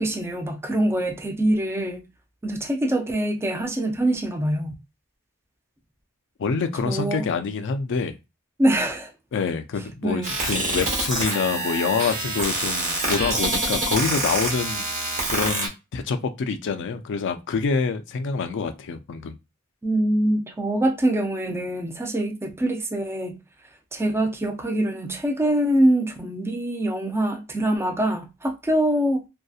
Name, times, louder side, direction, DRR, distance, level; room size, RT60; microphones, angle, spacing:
voice 1, 0.0-2.1 2.4-4.8 6.9-7.3 8.6-9.1 10.0-10.3 19.8-23.4 23.9-29.2, right 1 dB, 10° right, 0.4 m, -24 dB
voice 2, 6.4-8.2 9.3-14.8 15.3-19.4, left 5 dB, 55° left, 0.4 m, -26 dB
sound 1, 10.2-15.7, right 2 dB, 35° right, 0.9 m, -26 dB
2.7 x 2.1 x 2.3 m
head